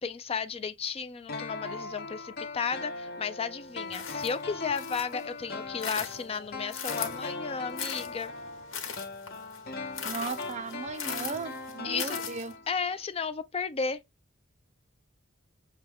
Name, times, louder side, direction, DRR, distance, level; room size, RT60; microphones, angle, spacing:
voice 1, 0.0-8.3 11.8-12.2 12.7-14.0, left 5 dB, 30° left, 0.4 m, -34 dB
sound 1, 1.3-12.9 13.2-13.3, left 3 dB, 50° left, 0.9 m, -39 dB
sound 2, 3.9-5.2 5.7-7.3 7.8-12.5, left 7 dB, 75° left, 1.2 m, -39 dB
voice 2, 10.0-12.5, right 4 dB, 35° right, 0.4 m, -36 dB
6.8 x 2.3 x 3.4 m
head